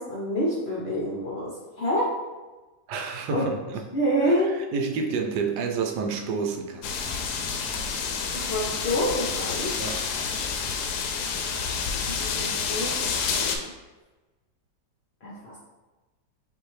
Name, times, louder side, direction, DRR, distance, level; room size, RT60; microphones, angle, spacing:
voice 1, 0.0-2.1 3.3-3.5 3.9-4.5 8.3-9.7 12.1-13.7 15.2-15.6, equal, 55° left, -4 dB, 0.8 m, -27 dB
voice 2, 2.9-3.8 4.2-6.9 9.8-10.0, right 5 dB, 80° right, 3 dB, 1.1 m, -29 dB
sound 1, 6.8-13.6, left 5 dB, 75° left, 1.1 m, -29 dB
5.6 x 2.6 x 3.1 m, 1.2 s
omnidirectional pair, 1.8 m